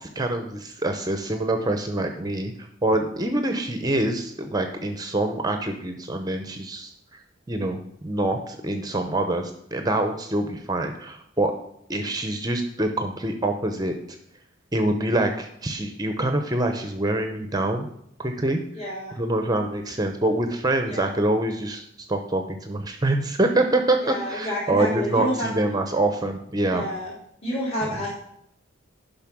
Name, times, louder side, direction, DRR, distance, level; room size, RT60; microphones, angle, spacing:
voice 1, 0.0-2.5 2.8-7.2 7.5-11.5 11.9-13.9 14.7-17.9 18.2-18.6 19.2-26.8, right 1 dB, 20° right, 6 dB, 0.7 m, -25 dB
voice 2, 18.7-19.1 20.9-21.1 24.0-25.5 26.7-27.1 27.4-28.1, left 1 dB, 35° left, -7 dB, 3.4 m, -28 dB
10.5 x 5.6 x 6.0 m, 0.73 s
head